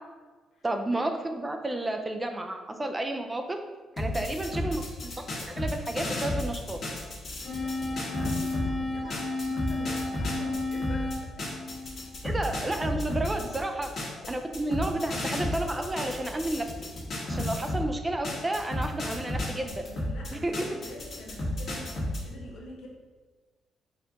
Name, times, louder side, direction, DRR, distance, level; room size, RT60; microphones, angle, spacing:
voice 1, 0.6-3.6 4.0-4.8 5.0-5.1 5.5-6.8 12.2-16.7 17.3-19.7 20.3-20.5, right 1 dB, 20° right, 5 dB, 0.4 m, -31 dB
voice 2, 4.0-4.8 7.4-11.1 13.7-13.8 19.9-22.9, left 1 dB, 75° left, -1 dB, 0.9 m, -46 dB
sound 1, 4.0-8.7 9.1-17.9 18.2-22.2, left 1 dB, 50° left, 1.4 m, -33 dB
sound 2, 7.4-12.5, left 2 dB, 25° left, 1.5 m, -33 dB
4.2 x 2.4 x 3.9 m, 1.4 s
cardioid pair, 90°, 0 cm